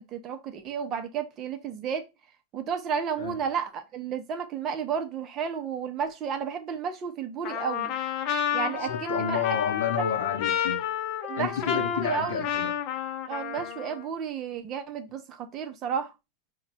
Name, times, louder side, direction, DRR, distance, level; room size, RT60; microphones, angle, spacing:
voice 1, 0.0-2.1 2.5-8.0 8.5-9.4 9.8-10.1 11.2-12.5 13.3-16.1, right 7 dB, 30° right, 0.7 m, -32 dB
Trumpet, 7.4-14.1, left 9 dB, 45° left, 0.7 m, -30 dB
voice 2, 8.8-10.8 11.4-12.8, left 8 dB, 85° left, 0.8 m, -30 dB
4.6 x 2.3 x 4.1 m
supercardioid pair, 145°, 0 cm